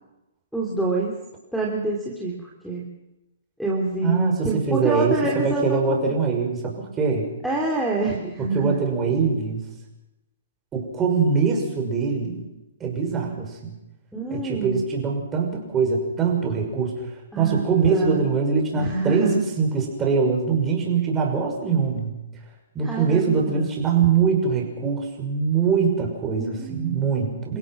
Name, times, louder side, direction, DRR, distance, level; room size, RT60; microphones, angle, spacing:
voice 1, 0.5-1.1 1.5-2.9 3.6-6.1 7.4-8.8 14.1-14.8 17.3-18.3 18.8-19.4 22.8-23.7 26.4-27.0, right 2 dB, ahead, -1 dB, 3.0 m, -26 dB
voice 2, 4.0-7.3 8.4-9.6 10.7-12.5 12.8-13.7 14.3-17.1 17.4-22.1 22.7-27.6, right 5 dB, 15° right, 0 dB, 6.0 m, -23 dB
29.0 x 16.5 x 6.2 m, 0.96 s
hypercardioid pair, 150°, 0 cm